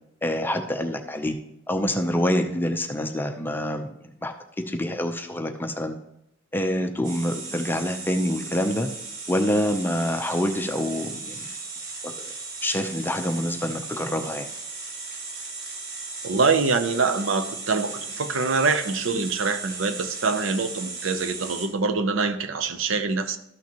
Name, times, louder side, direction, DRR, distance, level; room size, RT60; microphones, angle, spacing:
voice 1, 0.2-1.3 1.7-4.3 4.7-6.0 6.5-8.9 9.3-11.5 12.0-12.3 12.6-14.5, left 1 dB, 10° left, 4 dB, 0.7 m, -26 dB
sound 1, 7.0-21.7, right 4 dB, 50° right, 1.6 m, -36 dB
voice 2, 16.2-23.4, right 4 dB, 75° right, 9 dB, 0.7 m, -24 dB
13.0 x 5.9 x 3.0 m, 0.81 s
head